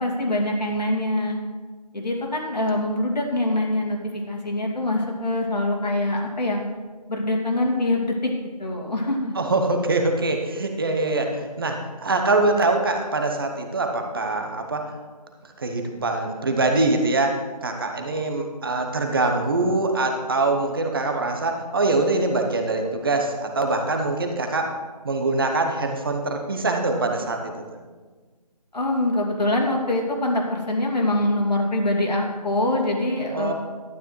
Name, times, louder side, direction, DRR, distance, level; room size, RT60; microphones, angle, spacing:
voice 1, 0.0-1.4 1.9-6.6 7.1-8.3 8.6-9.3 28.7-33.5, left 1 dB, 80° left, -1 dB, 2.5 m, -24 dB
voice 2, 9.3-14.8 15.6-24.7 25.0-27.5 33.3-33.5, right 2 dB, 35° right, 4 dB, 0.9 m, -23 dB
12.0 x 9.6 x 3.2 m, 1.4 s
figure-of-eight pair, 160°, 21 cm